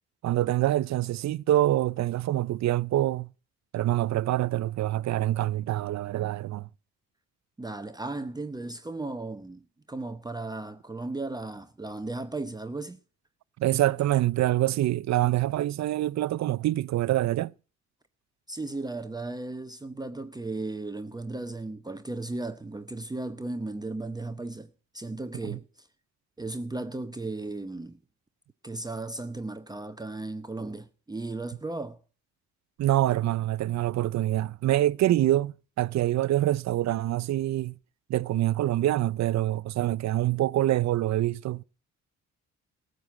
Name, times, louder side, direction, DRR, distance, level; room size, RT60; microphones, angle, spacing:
voice 1, 0.2-3.3 3.7-6.7 13.6-17.5 25.4-25.6 32.8-37.7 38.1-41.6, right 14 dB, 65° right, 0.6 m, -25 dB
voice 2, 7.6-9.6 9.9-13.0 18.5-25.9 26.4-28.0 28.6-32.0, right 2 dB, 15° right, 0.9 m, -35 dB
14.5 x 7.7 x 8.3 m
cardioid pair, 90°, 30 cm